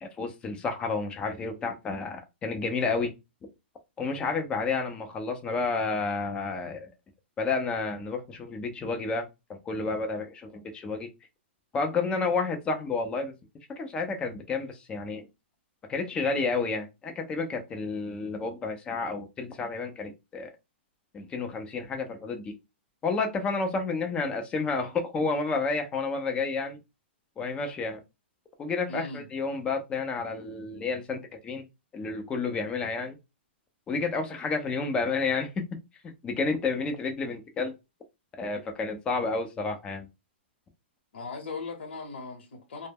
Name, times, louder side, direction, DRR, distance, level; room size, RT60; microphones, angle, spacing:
voice 1, 0.0-3.1 4.0-6.9 7.4-11.1 11.7-13.3 13.8-15.3 15.9-20.5 21.1-22.6 23.0-26.8 27.4-28.0 28.6-31.6 31.9-33.2 33.9-35.5 36.2-37.7 38.4-40.1, left 4 dB, 15° left, 0.5 m, -30 dB
voice 2, 28.9-29.2 41.1-42.9, left 4 dB, 70° left, 0.9 m, -38 dB
2.1 x 2.1 x 3.4 m
hypercardioid pair, 145°, 6 cm